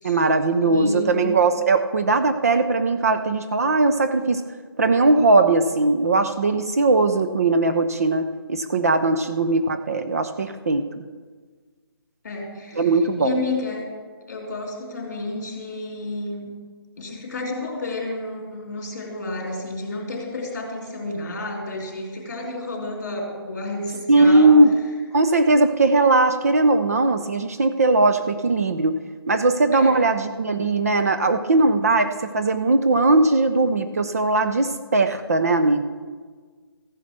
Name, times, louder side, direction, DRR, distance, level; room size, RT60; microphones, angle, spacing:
voice 1, 0.0-4.4 4.8-10.9 12.8-13.4 24.1-24.7 25.1-29.0 29.3-35.8, right 2 dB, 35° right, 8 dB, 0.6 m, -19 dB
voice 2, 0.6-1.2 12.2-12.9 13.2-13.9 14.3-16.5 17.0-24.6 29.7-30.0, left 2 dB, 40° left, 0 dB, 3.8 m, -31 dB
14.5 x 10.5 x 6.1 m, 1.5 s
hypercardioid pair, 175°, 13 cm